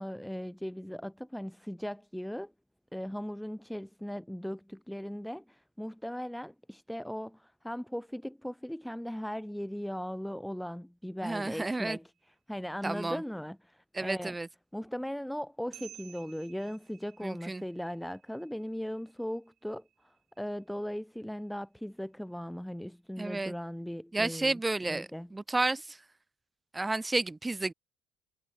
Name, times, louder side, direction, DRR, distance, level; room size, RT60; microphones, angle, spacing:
voice 1, 0.0-2.5 2.9-12.1 12.5-14.4 14.7-25.3, equal, ahead, 1.1 m, -38 dB
voice 2, 11.2-12.0 12.8-13.2 13.9-14.5 17.2-17.6 23.2-23.5 24.1-26.0 26.7-27.7, right 2 dB, 15° right, 2.5 m, -31 dB
sound 1, 12.1-12.4 15.7-21.5, right 12 dB, 55° right, 4.0 m, -56 dB
hypercardioid pair, 65°, 0 cm